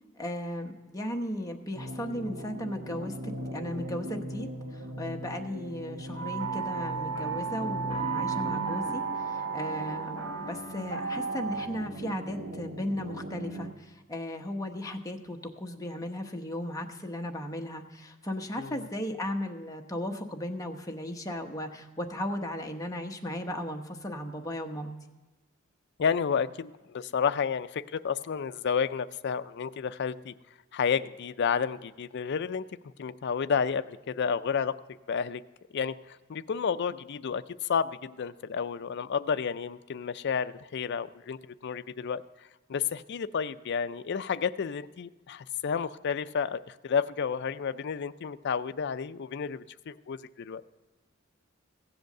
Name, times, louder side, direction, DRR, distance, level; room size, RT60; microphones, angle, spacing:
voice 1, 0.1-24.9, left 1 dB, 15° left, 3 dB, 1.0 m, -36 dB
sound 1, 1.7-13.7, equal, 45° right, 1.2 m, -39 dB
sound 2, 6.1-11.7, right 6 dB, 85° right, 3.4 m, -34 dB
voice 2, 26.0-30.3 30.7-32.6 33.0-34.8 35.1-35.4 35.7-42.2 42.7-50.6, left 6 dB, 55° left, 13 dB, 0.4 m, -31 dB
15.5 x 7.9 x 6.6 m, 1.2 s
head